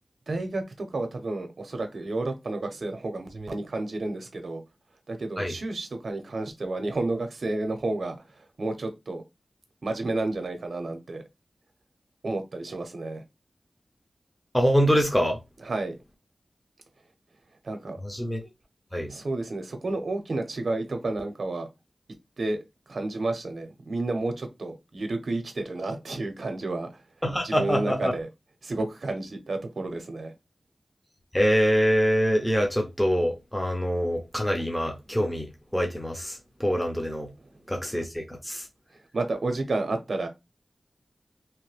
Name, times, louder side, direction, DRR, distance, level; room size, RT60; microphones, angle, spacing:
voice 1, 0.3-4.6 5.1-8.2 8.6-9.2 9.8-11.2 12.2-13.2 15.6-16.0 17.6-18.0 19.1-21.7 22.4-22.6 22.9-26.9 27.4-28.3 28.6-30.3 39.1-40.3, right 2 dB, 70° right, 0.6 m, -31 dB
voice 2, 14.5-15.4 18.0-18.4 18.9-19.1 27.2-28.1 31.3-37.3 37.7-38.6, equal, 5° left, 0.7 m, -25 dB
2.9 x 2.1 x 3.2 m
wide cardioid pair, 95°, 0 cm